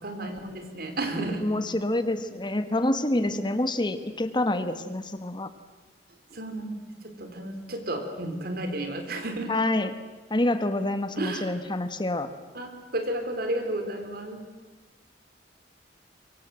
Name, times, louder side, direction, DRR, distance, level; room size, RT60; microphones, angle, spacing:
voice 1, 0.0-1.4 3.2-3.3 6.3-6.8 7.2-9.5 11.2-11.5 12.5-14.4, right 1 dB, 60° right, 6 dB, 3.8 m, -32 dB
voice 2, 1.4-5.5 9.5-9.9 10.3-12.3, left 1 dB, 25° left, 10 dB, 1.3 m, -27 dB
24.0 x 23.5 x 7.8 m, 1.2 s
head